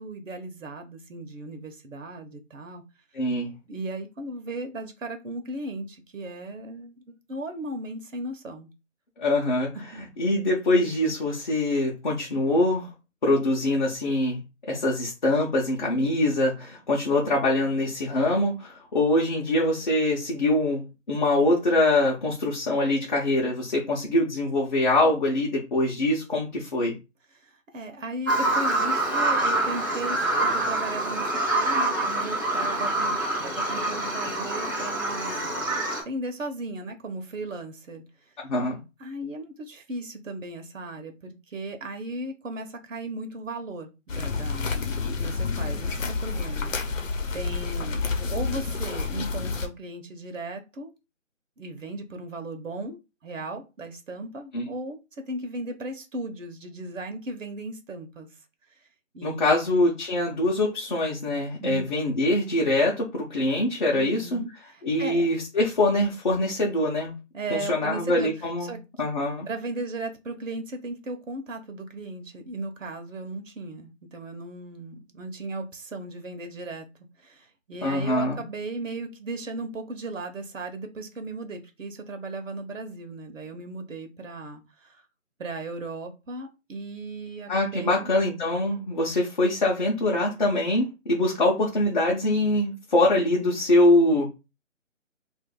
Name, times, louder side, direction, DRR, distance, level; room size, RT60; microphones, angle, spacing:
voice 1, 0.0-2.8 3.7-8.7 9.9-10.0 27.3-33.2 33.4-38.0 39.0-44.7 45.1-50.9 51.6-58.3 59.1-59.9 61.6-61.9 63.9-65.4 67.3-68.3 68.6-68.8 69.5-76.9 77.2-85.0 85.4-88.1, right 2 dB, 75° right, 6 dB, 0.9 m, -36 dB
voice 2, 3.1-3.5 9.2-9.8 10.2-12.9 13.2-14.4 14.7-27.0 38.4-38.8 54.5-54.7 59.2-64.4 64.8-67.1 67.5-68.7 69.0-69.5 77.8-78.4 87.5-94.3, left 1 dB, 35° left, -2 dB, 0.7 m, -24 dB
Bird vocalization bird call bird song, 28.3-36.0, right 2 dB, 15° right, 0.5 m, -26 dB
sound 1, 44.1-49.7, left 4 dB, 75° left, 0.9 m, -29 dB
2.6 x 2.5 x 3.7 m, 0.27 s
figure-of-eight pair, 160°, 39 cm